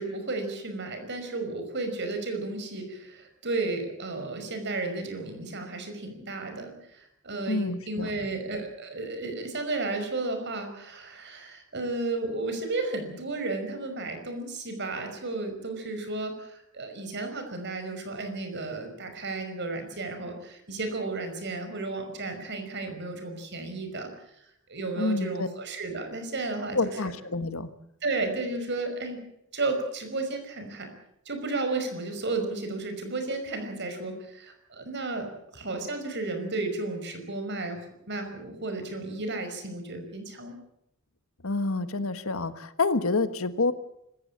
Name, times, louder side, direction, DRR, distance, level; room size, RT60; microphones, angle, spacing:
voice 1, 0.0-24.4 24.7-27.1 28.0-29.2 29.5-30.9 31.3-37.8 38.1-40.6, right 3 dB, 55° right, 6 dB, 5.6 m, -33 dB
voice 2, 7.5-8.1 25.0-25.5 26.7-27.7 41.4-43.7, left 3 dB, 75° left, 12 dB, 1.5 m, -28 dB
25.5 x 15.0 x 8.8 m, 0.79 s
head